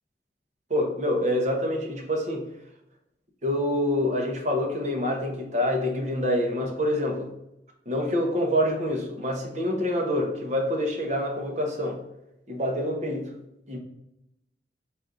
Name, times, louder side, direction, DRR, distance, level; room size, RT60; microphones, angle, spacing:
voice 1, 0.7-2.5 3.4-7.3 7.9-12.0 12.5-13.3 13.7-13.8, left 1 dB, 40° right, 0 dB, 0.9 m, -26 dB
4.2 x 2.6 x 4.9 m, 0.84 s
head